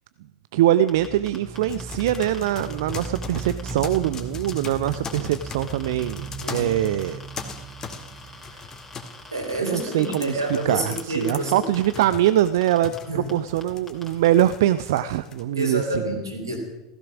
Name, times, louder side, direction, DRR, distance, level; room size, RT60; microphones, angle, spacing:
voice 1, 0.5-7.2 8.5-8.7 9.6-16.0, right 12 dB, 60° right, 14 dB, 0.5 m, -23 dB
sound 1, 0.9-4.2 4.4-12.3 12.6-13.0 13.3-13.4 13.6-14.3, left 2 dB, 10° left, 3.2 m, -44 dB
sound 2, 0.9-9.6, right 5 dB, 20° right, 1.0 m, -38 dB
sound 3, 1.7-15.4, left 6 dB, 25° left, 1.9 m, -40 dB
voice 2, 6.4-6.9 9.3-11.6 13.1-13.3 15.5-16.6, right 1 dB, 85° right, 2 dB, 4.0 m, -28 dB
16.0 x 15.0 x 6.1 m, 0.97 s
figure-of-eight pair, 80°, 2 cm